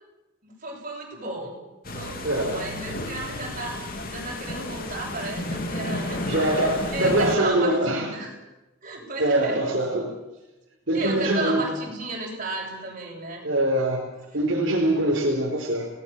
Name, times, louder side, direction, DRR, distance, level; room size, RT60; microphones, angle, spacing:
voice 1, 0.4-1.6 1.9-3.8 4.1-6.3 6.9-8.3 8.8-9.6 10.9-13.4, right 2 dB, 40° right, -2 dB, 7.7 m, -33 dB
sound 1, 1.8-7.4, left 1 dB, 45° left, 2.9 m, -32 dB
voice 2, 2.2-2.7 6.2-8.1 9.2-10.1 10.9-11.7 13.4-15.9, right 1 dB, 60° right, -2 dB, 4.1 m, -23 dB
28.0 x 18.5 x 7.3 m, 1.0 s
head